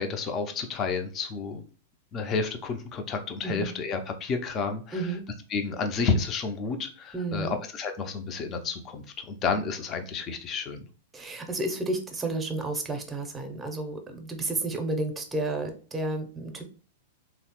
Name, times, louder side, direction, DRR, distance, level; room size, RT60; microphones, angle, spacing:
voice 1, 0.0-1.6 2.1-5.0 5.5-10.8, left 4 dB, 35° left, 6 dB, 0.5 m, -30 dB
voice 2, 4.9-5.2 7.1-7.6 11.1-16.6, right 2 dB, 15° right, 5 dB, 0.7 m, -31 dB
3.1 x 2.1 x 2.9 m, 0.39 s
hypercardioid pair, 105°, 0 cm